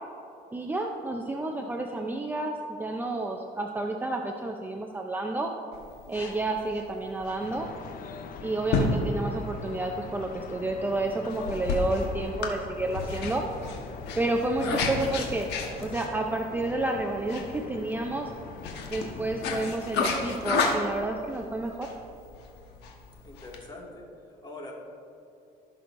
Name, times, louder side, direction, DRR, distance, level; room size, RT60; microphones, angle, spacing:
voice 1, 0.5-5.5 6.1-7.7 8.4-13.4 14.2-15.5 15.8-18.3 18.9-21.9, right 2 dB, 10° right, 2 dB, 0.5 m, -30 dB
sound 1, 5.7-23.6, left 3 dB, 85° left, 1.2 m, -33 dB
sound 2, 7.4-19.7, left 6 dB, 55° left, 0.6 m, -43 dB
voice 2, 23.2-24.7, left 2 dB, 25° left, -2 dB, 2.1 m, -44 dB
16.5 x 6.2 x 2.6 m, 2.7 s
cardioid pair, 110°, 17 cm